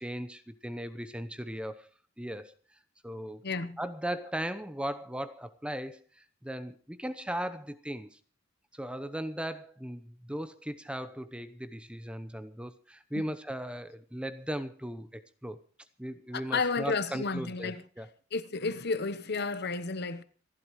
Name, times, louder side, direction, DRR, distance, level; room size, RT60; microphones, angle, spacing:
voice 1, 0.0-1.9 2.2-2.5 3.0-3.4 3.8-8.2 8.7-15.6 16.0-18.1, equal, 5° right, 0.8 m, -37 dB
voice 2, 3.4-3.8 13.1-13.2 16.3-17.8 18.3-20.2, left 4 dB, 55° left, 1.0 m, -32 dB
27.0 x 11.5 x 3.1 m
head